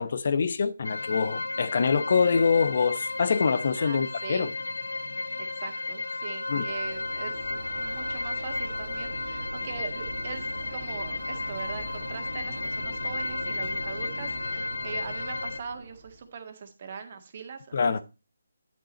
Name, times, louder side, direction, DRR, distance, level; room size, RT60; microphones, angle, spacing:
voice 1, 0.0-4.5 6.5-6.7 17.7-18.0, left 5 dB, 50° left, 0.8 m, -25 dB
sound 1, 0.8-15.6, left 3 dB, 85° left, 1.0 m, -33 dB
voice 2, 3.8-4.4 5.4-18.0, right 6 dB, 40° right, 1.8 m, -41 dB
sound 2, 6.5-16.3, right 2 dB, 60° right, 1.6 m, -43 dB
10.0 x 6.1 x 4.1 m
figure-of-eight pair, 160°, 0 cm